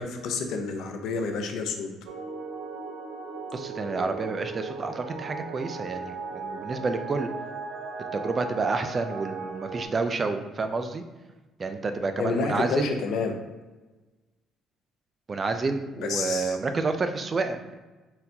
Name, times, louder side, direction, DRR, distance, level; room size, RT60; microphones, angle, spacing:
voice 1, 0.0-1.9 12.2-13.3 16.0-16.6, left 4 dB, 70° left, 5 dB, 0.6 m, -29 dB
sound 1, 2.1-9.9, right 4 dB, 90° right, 0.6 m, -37 dB
voice 2, 3.5-7.3 8.1-11.0 11.6-12.9 15.3-17.8, right 3 dB, 30° right, 8 dB, 0.3 m, -29 dB
4.3 x 3.9 x 2.7 m, 1.2 s
cardioid pair, 130°, 0 cm